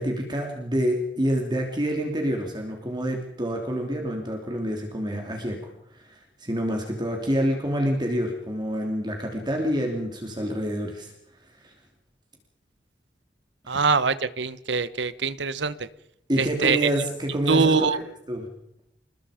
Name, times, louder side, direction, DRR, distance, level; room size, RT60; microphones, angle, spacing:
voice 1, 0.0-11.1 11.6-11.7 16.3-18.0 18.3-18.5, equal, 25° right, 2 dB, 3.1 m, -27 dB
voice 2, 13.7-15.9 16.4-16.9 17.5-18.0, right 5 dB, 75° right, 15 dB, 1.2 m, -23 dB
28.5 x 20.5 x 5.1 m, 0.80 s
head